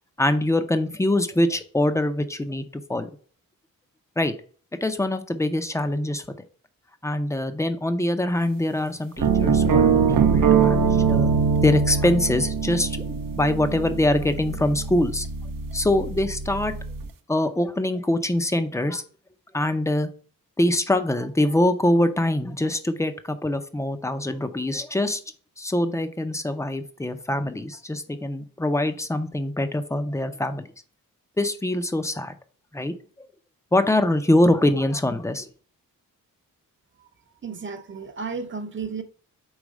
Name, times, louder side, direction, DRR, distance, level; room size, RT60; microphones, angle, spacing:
voice 1, 0.2-2.6 2.9-3.1 4.2-4.3 4.8-6.2 7.0-11.3 11.6-15.3 15.7-16.7 17.3-19.0 19.5-20.1 20.6-25.2 25.6-30.7 31.4-32.3 32.7-33.3 33.7-35.5, left 1 dB, 10° left, 0.5 m, -24 dB
sound 1, 9.2-17.1, right 6 dB, 75° right, 0.7 m, -23 dB
voice 2, 37.4-39.0, right 5 dB, 35° right, 0.7 m, -33 dB
4.8 x 4.0 x 5.2 m
wide cardioid pair, 150°, 34 cm